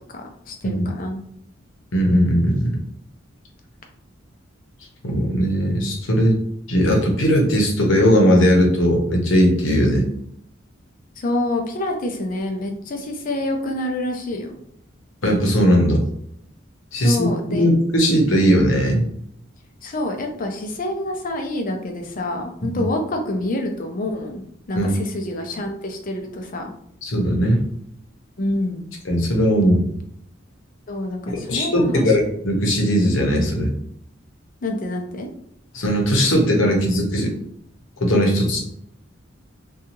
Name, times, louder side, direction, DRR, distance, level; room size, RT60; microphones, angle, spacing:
voice 1, 0.1-1.2 11.2-14.6 16.9-17.7 19.8-26.7 28.4-28.8 30.9-32.4 34.6-35.3, left 1 dB, 45° left, 4 dB, 0.5 m, -27 dB
voice 2, 1.9-2.8 5.0-6.4 6.7-10.1 15.2-16.0 16.9-19.0 22.6-22.8 24.7-24.9 27.0-27.6 29.1-29.8 31.3-33.7 35.7-37.3 38.0-38.6, equal, 85° left, 1 dB, 0.8 m, -18 dB
2.7 x 2.3 x 2.9 m, 0.70 s
head